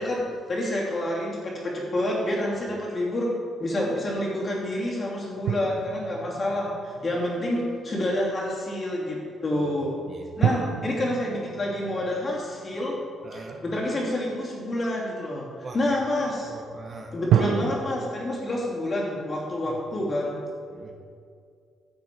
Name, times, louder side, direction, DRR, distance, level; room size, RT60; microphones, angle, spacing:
voice 1, 0.0-3.3 3.6-9.9 10.4-13.0 13.3-16.5 17.1-20.3, left 1 dB, 35° left, -4 dB, 2.8 m, -28 dB
sound 1, 5.5-7.4 10.4-13.7 17.3-17.8, right 9 dB, 85° right, 0.4 m, -28 dB
voice 2, 9.5-10.6 13.2-13.6 15.6-16.0 16.5-17.2 19.6-19.8 20.7-20.9, right 3 dB, 40° right, 3 dB, 1.1 m, -43 dB
11.0 x 6.9 x 4.6 m, 2.3 s
cardioid pair, 90°, 0 cm